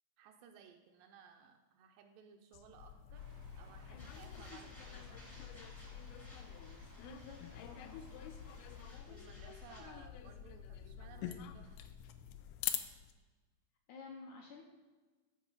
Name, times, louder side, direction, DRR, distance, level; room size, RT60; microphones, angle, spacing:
voice 1, 0.2-3.2 3.6-5.6 9.1-11.9, right 7 dB, 80° right, 4 dB, 2.1 m, -59 dB
sound 1, 2.5-13.1, left 10 dB, 90° left, 1.8 m, -46 dB
Stream, 3.1-8.9, equal, 25° right, 0.8 m, -63 dB
sound 2, 4.0-9.8, equal, 10° left, 0.6 m, -61 dB
voice 2, 7.0-8.0 13.9-14.6, left 4 dB, 75° left, 0 dB, 1.9 m, -51 dB
14.0 x 4.8 x 4.0 m, 1.3 s
omnidirectional pair, 4.3 m